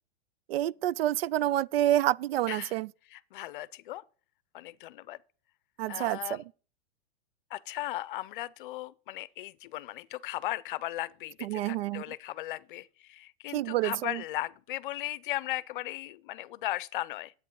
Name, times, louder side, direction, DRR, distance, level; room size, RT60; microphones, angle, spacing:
voice 1, 0.5-2.9 5.8-6.4 11.4-12.0 13.5-14.2, right 13 dB, 70° right, 0.5 m, -28 dB
voice 2, 3.1-4.0 4.5-5.2 5.9-6.4 7.5-17.3, left 16 dB, 55° left, 0.6 m, -37 dB
9.9 x 8.5 x 5.4 m
supercardioid pair, 150°, 31 cm